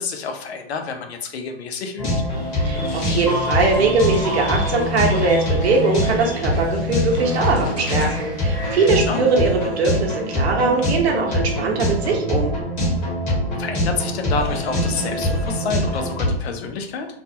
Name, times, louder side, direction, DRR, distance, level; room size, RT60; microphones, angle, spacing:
voice 1, 0.0-2.1 9.1-9.3 13.3-17.1, left 5 dB, 80° left, 5 dB, 0.6 m, -28 dB
sound 1, 2.0-16.3, left 1 dB, 25° left, 1.1 m, -23 dB
sound 2, 2.3-8.9, equal, 5° right, 0.6 m, -38 dB
sound 3, 2.7-8.2, left 2 dB, 50° left, 1.0 m, -36 dB
voice 2, 2.7-12.5, right 4 dB, 75° right, 0 dB, 0.9 m, -21 dB
2.5 x 2.3 x 2.7 m, 0.75 s
hypercardioid pair, 145°, 32 cm